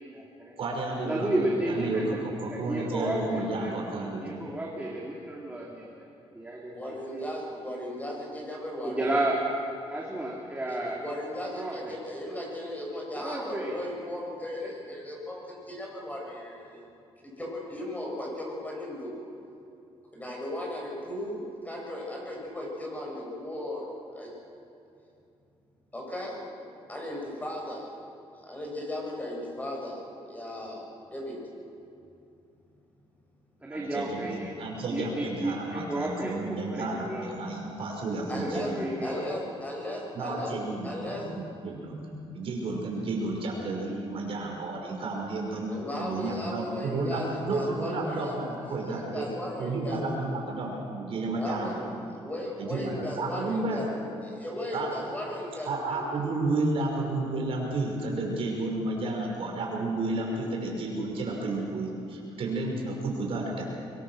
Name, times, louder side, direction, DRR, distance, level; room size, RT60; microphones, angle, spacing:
voice 1, 0.0-0.5 1.0-3.7 4.2-7.2 8.8-9.4 9.9-11.0 11.5-11.9 13.1-13.8 14.6-14.7 33.6-34.5 34.9-37.3 38.3-39.2, right 1 dB, 15° right, -3 dB, 3.2 m, -32 dB
voice 2, 0.6-4.3 33.7-38.9 40.1-45.7 46.0-49.3 49.6-51.8 52.6-53.9 54.7-54.9 55.7-63.6, right 2 dB, 60° right, -1 dB, 5.7 m, -32 dB
voice 3, 6.7-9.1 10.7-16.9 17.4-19.1 20.1-23.9 24.2-24.3 25.9-26.4 26.9-27.9 28.4-31.4 38.3-38.7 39.0-40.5 40.8-41.2 45.7-48.4 48.9-50.3 51.4-51.7 52.2-56.1, left 1 dB, 15° left, -2 dB, 7.5 m, -36 dB
24.5 x 22.0 x 6.4 m, 2.7 s
cardioid pair, 110°, 11 cm